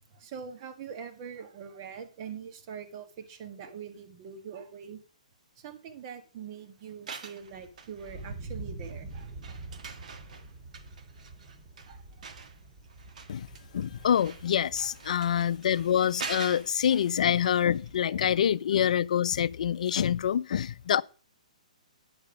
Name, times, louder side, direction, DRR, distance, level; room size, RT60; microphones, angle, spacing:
voice 1, 0.1-5.0 5.6-9.6 11.9-12.0 14.8-14.9 15.1-15.3 16.9-17.0 18.2-18.4, right 7 dB, 40° right, 1.6 m, -43 dB
sound 1, 6.9-8.5 8.8-17.9 18.2-18.3, right 5 dB, 70° right, 1.4 m, -45 dB
Thunder, 7.4-18.0, right 3 dB, 20° right, 2.4 m, -46 dB
voice 2, 13.7-21.0, left 9 dB, 65° left, 0.5 m, -26 dB
9.7 x 6.8 x 5.2 m
hypercardioid pair, 150°, 4 cm